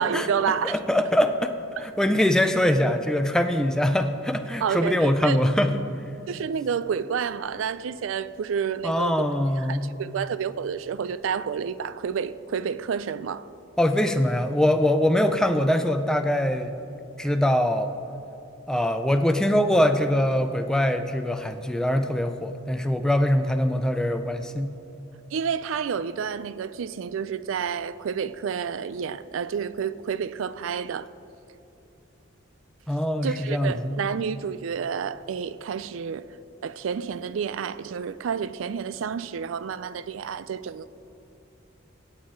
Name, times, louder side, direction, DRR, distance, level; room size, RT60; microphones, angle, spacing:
voice 1, 0.0-0.8 4.6-5.4 6.3-9.3 9.7-13.5 25.3-31.1 33.2-36.3 36.6-40.9, right 7 dB, 75° right, 0.4 m, -29 dB
voice 2, 0.6-1.5 1.8-5.8 8.8-9.9 13.8-16.7 17.2-17.9 18.7-24.7 32.9-34.0, left 1 dB, 5° left, 0.3 m, -23 dB
17.0 x 7.3 x 3.7 m
head